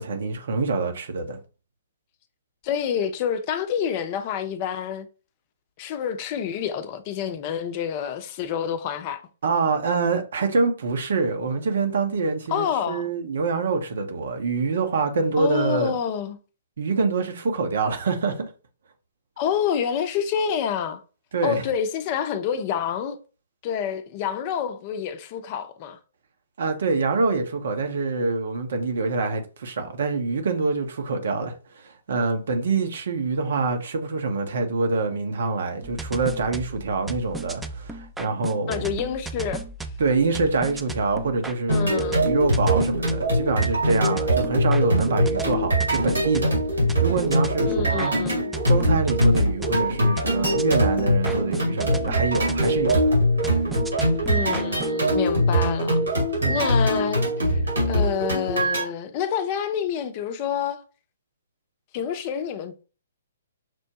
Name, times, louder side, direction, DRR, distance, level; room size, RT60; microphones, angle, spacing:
voice 1, 0.0-1.4 9.4-15.9 16.8-18.5 21.3-21.6 26.6-38.8 40.0-46.6 47.0-48.2 48.7-53.1 56.4-56.6, right 4 dB, 65° right, 0.9 m, -25 dB
voice 2, 2.6-5.1 5.8-9.2 12.5-13.1 15.4-16.4 19.4-21.0 21.4-23.2 23.6-26.0 38.7-39.6 41.7-42.3 47.7-48.5 54.3-56.0 56.5-57.6 57.9-60.8 61.9-62.8, left 8 dB, 35° left, 0.6 m, -28 dB
sound 1, 35.8-55.0, right 3 dB, 5° right, 0.4 m, -36 dB
sound 2, 41.7-58.8, equal, 85° right, 2.2 m, -22 dB
6.0 x 2.1 x 2.9 m
figure-of-eight pair, 125°, 0 cm